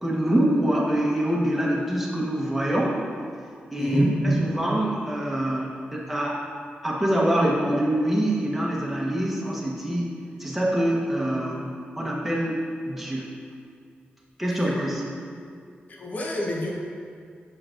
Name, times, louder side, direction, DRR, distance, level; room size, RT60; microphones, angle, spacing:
voice 1, 0.0-3.0 3.7-6.4 6.8-10.1 10.4-11.7 12.0-13.3 14.4-15.1, right 1 dB, 5° right, -4 dB, 1.0 m, -24 dB
voice 2, 3.8-4.1 14.5-14.7 15.9-16.7, left 1 dB, 45° left, -1 dB, 0.9 m, -30 dB
7.0 x 6.1 x 2.6 m, 2.2 s
wide cardioid pair, 135°, 4 cm